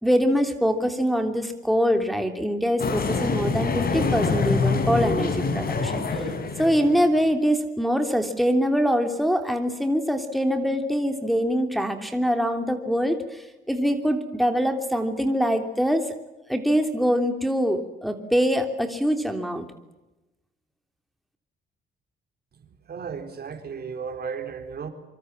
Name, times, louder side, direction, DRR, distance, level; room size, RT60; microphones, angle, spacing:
voice 1, 0.0-6.2 6.6-16.1 16.5-19.6, equal, ahead, 5 dB, 3.2 m, -24 dB
sound 1, 2.8-7.2, left 4 dB, 50° left, 5.3 m, -25 dB
voice 2, 22.6-24.9, right 6 dB, 50° right, 6 dB, 4.3 m, -35 dB
25.5 x 25.0 x 7.6 m, 1.0 s
cardioid pair, 90°, 20 cm